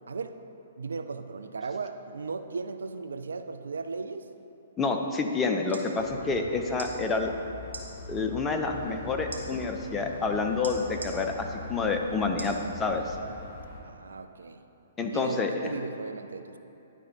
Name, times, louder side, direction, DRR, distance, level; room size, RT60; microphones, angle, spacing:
voice 1, 0.1-0.4 0.8-4.3 13.8-14.6 15.1-16.6, right 4 dB, 65° right, 9 dB, 0.3 m, -36 dB
voice 2, 4.8-7.3 8.1-13.2 15.0-15.7, left 4 dB, 15° left, 3 dB, 0.6 m, -28 dB
sound 1, 5.7-5.9 6.7-6.9 7.7-7.9 9.3-9.4 10.6-11.1 12.4-12.6 13.2-13.3, right 2 dB, 80° right, 1.1 m, -40 dB
sound 2, 6.0-13.8, left 2 dB, 40° left, 1.0 m, -43 dB
9.9 x 3.6 x 4.5 m, 2.9 s
figure-of-eight pair, 120°, 0 cm